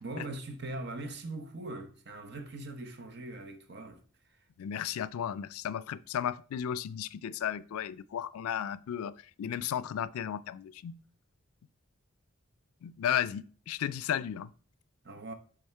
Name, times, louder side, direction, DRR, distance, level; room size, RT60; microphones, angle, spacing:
voice 1, 0.0-4.0 4.3-4.4 15.0-15.3, right 2 dB, 50° right, 0.9 m, -41 dB
voice 2, 4.6-11.0 12.8-14.5, left 9 dB, 90° left, 0.3 m, -34 dB
7.1 x 3.5 x 4.4 m
head